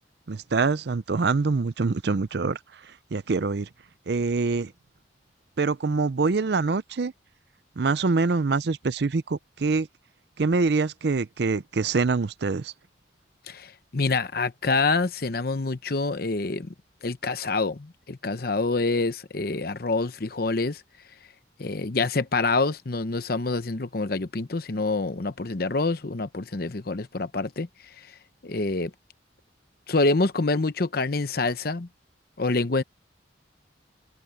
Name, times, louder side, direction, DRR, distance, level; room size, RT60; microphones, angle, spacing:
voice 1, 0.3-3.7 4.1-4.7 5.6-7.1 7.8-9.9 10.4-12.7, right 4 dB, 60° right, 0.5 m, -25 dB
voice 2, 13.5-16.7 17.0-20.8 21.6-27.7 28.4-28.9 29.9-31.9 32.4-32.8, left 3 dB, 50° left, 0.8 m, -26 dB
open air
head